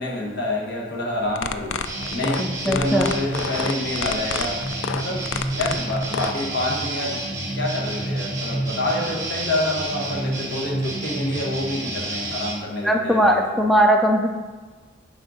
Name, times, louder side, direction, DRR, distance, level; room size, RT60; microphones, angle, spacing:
voice 1, 0.0-1.8 2.1-4.6 4.9-5.2 5.5-7.2 7.5-13.6, left 1 dB, 65° left, -2 dB, 1.4 m, -27 dB
sound 1, 1.3-6.3, left 7 dB, 85° left, 0.4 m, -28 dB
sound 2, 1.8-12.5, right 1 dB, 20° right, 1.5 m, -29 dB
voice 2, 2.4-3.1 12.8-14.3, equal, ahead, 2 dB, 0.3 m, -19 dB
6.3 x 4.4 x 4.9 m, 1.3 s
head